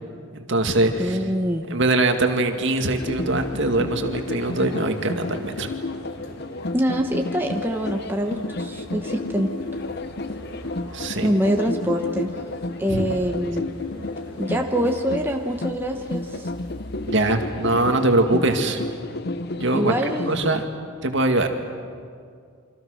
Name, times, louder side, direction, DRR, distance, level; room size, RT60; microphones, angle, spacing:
voice 1, 0.5-1.2 1.7-5.7 10.9-11.3 12.9-13.0 17.0-18.8 19.5-19.9 20.3-20.6 21.0-21.5, right 2 dB, 55° right, 5 dB, 2.1 m, -22 dB
voice 2, 1.0-1.6 6.7-9.5 11.2-12.3 12.8-13.7 14.4-16.5 19.7-20.3, equal, 10° right, 2 dB, 1.2 m, -24 dB
sound 1, 2.1-15.5, left 1 dB, 80° left, 2.7 m, -43 dB
sound 2, 3.0-20.6, left 2 dB, 50° left, 0.7 m, -32 dB
sound 3, 3.0-19.7, equal, 25° left, 7.5 m, -45 dB
28.5 x 25.0 x 6.4 m, 2.2 s
head